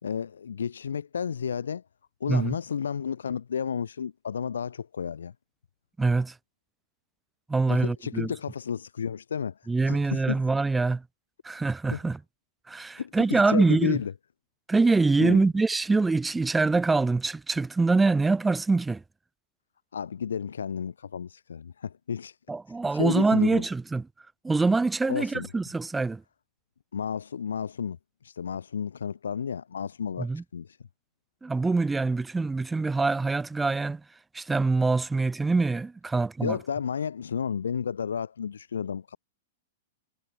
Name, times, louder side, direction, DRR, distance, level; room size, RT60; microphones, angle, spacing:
voice 1, 0.0-1.8 2.2-5.3 7.7-10.4 11.9-12.0 13.0-14.1 15.2-15.4 19.9-22.4 22.9-23.6 25.1-25.5 26.9-28.0 28.2-30.8 36.4-39.2, left 7 dB, 65° left, 4.6 m, -32 dB
voice 2, 2.3-2.6 6.0-6.3 7.5-8.3 9.7-11.0 11.4-12.2 12.7-14.0 14.7-19.0 22.5-24.1 24.4-26.2 30.2-30.4 31.4-34.0 34.3-36.6, right 3 dB, 10° right, 2.4 m, -24 dB
figure-of-eight pair, 100°, 0 cm